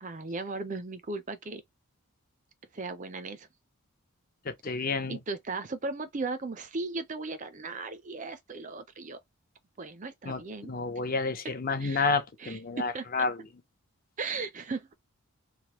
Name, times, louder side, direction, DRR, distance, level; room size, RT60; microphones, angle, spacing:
voice 1, 0.0-1.6 2.7-3.5 4.7-9.2 9.8-10.7 11.8-13.1 14.2-14.9, right 3 dB, 35° right, 0.4 m, -37 dB
voice 2, 4.5-5.2 10.3-13.4, left 4 dB, 40° left, 0.6 m, -30 dB
3.2 x 2.1 x 2.9 m
head